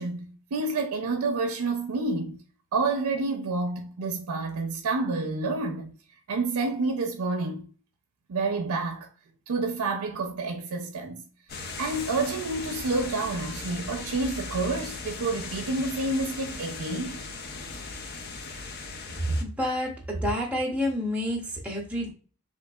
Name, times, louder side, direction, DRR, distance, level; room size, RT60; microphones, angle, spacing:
voice 1, 0.0-2.4 2.7-5.9 6.3-7.7 8.3-9.1 9.5-11.2 11.6-17.2, right 3 dB, 90° right, 0.5 m, -29 dB
sound 1, 11.5-19.4, left 4 dB, 45° left, 0.4 m, -38 dB
voice 2, 19.2-22.1, equal, 5° right, 0.6 m, -28 dB
3.7 x 2.5 x 2.2 m
head